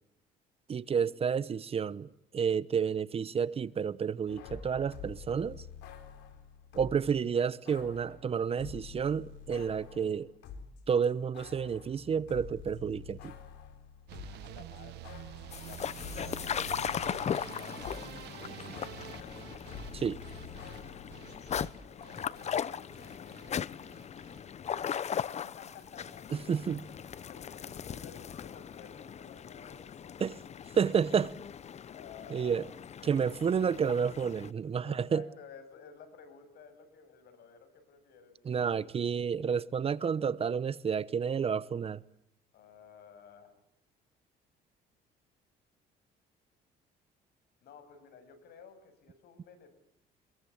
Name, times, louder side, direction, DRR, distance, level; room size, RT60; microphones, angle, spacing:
voice 1, 0.7-5.6 6.7-10.3 10.9-13.3 19.9-20.2 26.3-26.8 30.2-30.4 30.7-31.3 32.3-32.7 33.1-35.3 38.5-42.0, right 7 dB, 35° right, 0.9 m, -30 dB
sound 1, 4.3-7.1 7.7-10.8 11.1-18.2 18.5-21.7, left 6 dB, 90° left, 4.1 m, -48 dB
voice 2, 14.1-15.1 15.6-19.0 21.3-23.7 25.1-26.6 27.3-30.1 31.9-32.8 34.8-38.9 42.5-43.6 47.6-49.7, left 6 dB, 70° left, 7.9 m, -54 dB
sound 2, 14.1-26.2 26.5-27.1 27.4-28.0 28.3-28.5 28.9-29.0 29.2-29.3, right 14 dB, 80° right, 1.2 m, -49 dB
sound 3, 15.5-34.5, left 8 dB, 40° left, 1.0 m, -39 dB
27.0 x 22.0 x 8.6 m
cardioid pair, 110°, 17 cm